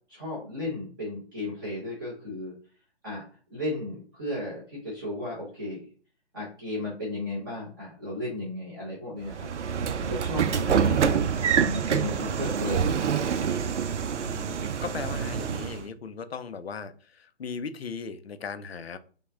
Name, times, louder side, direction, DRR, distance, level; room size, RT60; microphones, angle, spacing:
voice 1, 0.1-2.5 3.0-3.2 3.5-5.9 6.3-9.5 10.0-13.0, left 1 dB, 20° right, -7 dB, 1.0 m, -34 dB
Train / Sliding door, 9.3-15.9, right 7 dB, 80° right, 0.6 m, -26 dB
voice 2, 10.6-11.0 14.2-19.0, left 5 dB, 60° left, 11 dB, 0.6 m, -38 dB
5.3 x 2.3 x 3.6 m, 0.40 s
hypercardioid pair, 170°, 34 cm